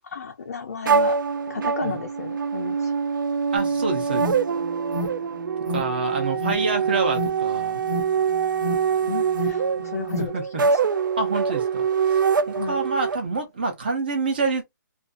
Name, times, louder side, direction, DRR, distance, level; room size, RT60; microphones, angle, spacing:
voice 1, 0.0-1.2 1.5-2.9 9.1-10.8 12.5-12.8, left 5 dB, 50° left, 0.4 m, -33 dB
sound 1, 0.8-13.2, right 6 dB, 80° right, 0.4 m, -24 dB
voice 2, 3.5-4.3 5.7-7.8 10.2-10.6 11.2-14.6, right 3 dB, 30° right, 0.7 m, -27 dB
Alarm, 3.6-10.3, left 1 dB, ahead, 0.8 m, -33 dB
2.4 x 2.3 x 2.4 m
hypercardioid pair, 180°, 11 cm